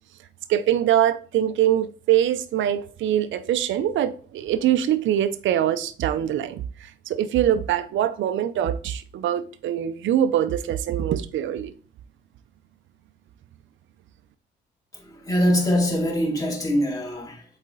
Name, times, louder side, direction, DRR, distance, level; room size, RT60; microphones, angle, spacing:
voice 1, 0.5-11.7, right 11 dB, 75° right, 0.6 m, -23 dB
voice 2, 14.9-17.4, equal, 15° left, 2.4 m, -23 dB
8.0 x 4.2 x 3.8 m
cardioid pair, 90°, 20 cm